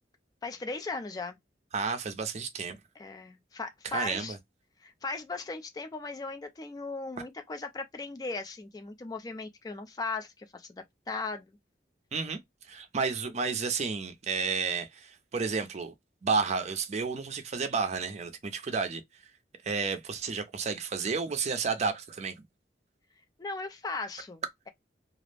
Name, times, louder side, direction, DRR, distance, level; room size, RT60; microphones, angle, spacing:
voice 1, 0.4-1.4 3.0-4.3 4.8-11.5 23.4-24.7, left 3 dB, 20° left, 0.3 m, -37 dB
voice 2, 1.7-2.8 3.8-4.4 12.1-15.9 16.2-19.2 19.6-22.3, right 5 dB, 40° right, 0.4 m, -31 dB
2.4 x 2.0 x 3.2 m
head